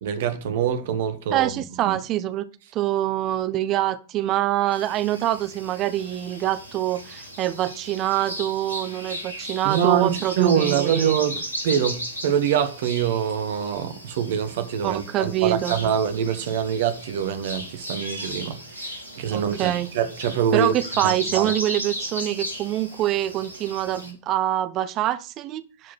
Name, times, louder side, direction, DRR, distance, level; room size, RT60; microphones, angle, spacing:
voice 1, 0.0-1.5 1.8-2.0 9.6-20.7 21.0-21.5, right 8 dB, 55° right, 1.3 m, -24 dB
voice 2, 1.3-2.4 2.7-11.2 14.8-15.7 19.3-19.9 20.5-25.9, right 13 dB, 35° right, 0.7 m, -25 dB
sound 1, 4.7-24.1, equal, 85° left, 2.8 m, -36 dB
11.0 x 5.1 x 6.0 m
figure-of-eight pair, 90°, 0 cm